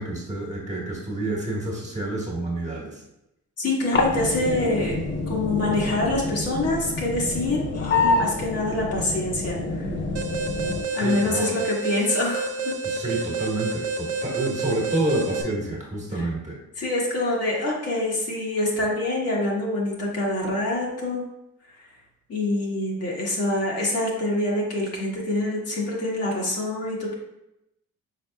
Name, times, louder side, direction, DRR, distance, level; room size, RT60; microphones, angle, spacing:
voice 1, 0.0-3.0 11.0-11.6 12.8-16.6, right 2 dB, 25° right, -3 dB, 1.5 m, -28 dB
voice 2, 3.6-5.0 5.3-9.9 10.9-12.7 16.1-16.2 16.8-21.2 21.7-21.8 22.3-27.1, left 2 dB, 55° left, -3 dB, 1.4 m, -26 dB
sound 1, 3.9-10.8, left 3 dB, 40° left, 0.7 m, -27 dB
Alarm, 10.2-15.4, right 3 dB, 55° right, 0.7 m, -29 dB
4.9 x 4.2 x 2.3 m, 0.87 s
cardioid pair, 90°, 30 cm